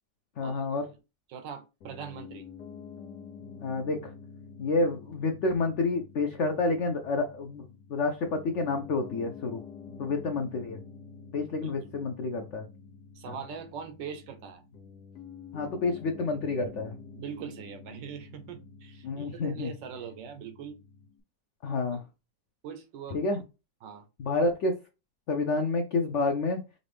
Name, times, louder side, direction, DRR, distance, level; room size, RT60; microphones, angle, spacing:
voice 1, 0.4-0.9 3.6-4.1 4.6-9.6 10.0-10.8 11.3-12.7 13.3-13.4 15.5-17.0 19.0-19.7 21.6-22.0 23.1-23.4 24.2-24.8 25.3-26.6, left 3 dB, 85° left, 0.6 m, -29 dB
voice 2, 1.3-2.5 11.6-11.9 13.1-14.6 17.1-20.8 21.9-22.0 22.6-23.2 23.8-24.1, right 7 dB, 80° right, 1.4 m, -42 dB
Piano, 1.8-21.2, left 5 dB, 65° left, 1.4 m, -48 dB
5.1 x 2.6 x 3.3 m
omnidirectional pair, 2.0 m